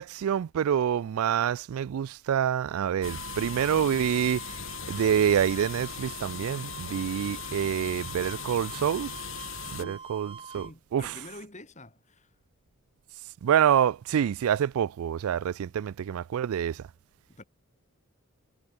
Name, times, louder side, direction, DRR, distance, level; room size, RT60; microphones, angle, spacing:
voice 1, 0.0-9.1 9.7-11.2 13.4-16.9, right 9 dB, 75° right, 0.3 m, -27 dB
sound 1, 3.0-9.8, left 7 dB, 60° left, 2.2 m, -39 dB
sound 2, 3.0-10.7, right 5 dB, 25° right, 4.6 m, -44 dB
voice 2, 10.5-12.3 17.3-17.4, left 1 dB, 30° left, 4.6 m, -46 dB
head